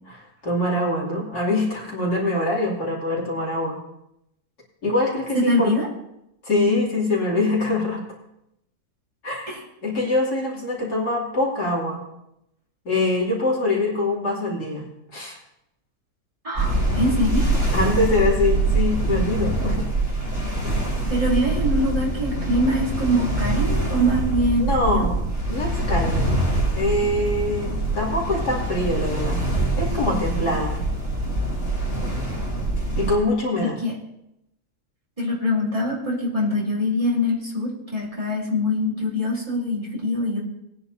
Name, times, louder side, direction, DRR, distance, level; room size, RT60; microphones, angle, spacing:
voice 1, 0.1-3.8 4.8-5.7 6.4-8.0 9.2-9.5 9.8-12.0 12.9-14.8 15.1-15.4 17.7-19.9 24.6-25.2 25.5-26.4 26.7-29.4 29.8-30.8 33.0-33.8, left 2 dB, 75° left, -4 dB, 3.5 m, -24 dB
voice 2, 5.3-5.9 9.5-9.6 16.4-17.5 21.1-25.1 33.8-34.0 35.2-40.4, equal, 20° right, -5 dB, 3.7 m, -23 dB
sound 1, 16.6-33.2, right 2 dB, 45° right, 5.5 m, -24 dB
21.0 x 9.9 x 2.8 m, 0.83 s
omnidirectional pair, 1.7 m